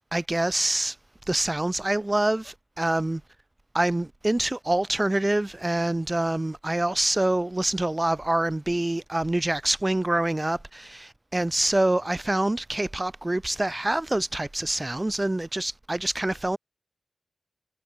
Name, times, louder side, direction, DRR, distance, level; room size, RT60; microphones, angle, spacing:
voice 1, 0.1-1.0 1.3-3.2 3.7-16.6, right 1 dB, 25° right, 3.1 m, -26 dB
cardioid pair, 50°, 0 cm